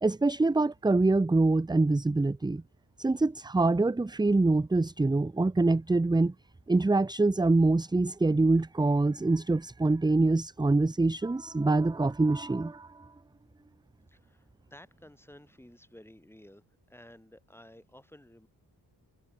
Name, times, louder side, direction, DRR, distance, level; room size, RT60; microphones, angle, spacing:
voice 1, 0.0-2.6 3.0-6.3 6.7-13.1, right 2 dB, 10° right, 0.6 m, -25 dB
voice 2, 14.1-18.5, left 1 dB, 5° left, 6.0 m, -54 dB
wide cardioid pair, 115°, 39 cm